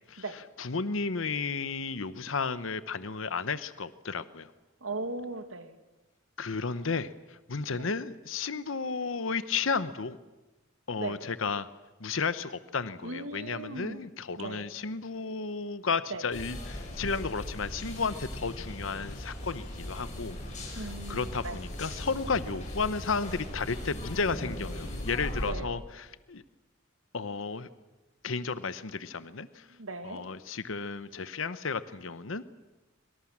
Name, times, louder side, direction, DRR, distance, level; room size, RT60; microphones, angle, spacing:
voice 1, 0.6-4.5 6.4-10.2 10.9-11.7 12.0-20.4 20.7-26.4 27.1-27.7 28.2-29.7 30.0-32.4, left 4 dB, 70° left, 14 dB, 0.9 m, -33 dB
voice 2, 4.8-5.7 7.7-7.9 11.0-11.2 13.0-14.1 14.4-14.7 16.1-16.2 20.7-21.6 25.5-25.8 29.8-30.3, right 2 dB, 85° right, 9 dB, 2.3 m, -38 dB
sound 1, 16.3-25.5, left 1 dB, 35° left, 7.7 m, -39 dB
25.0 x 24.5 x 7.3 m, 1.1 s
head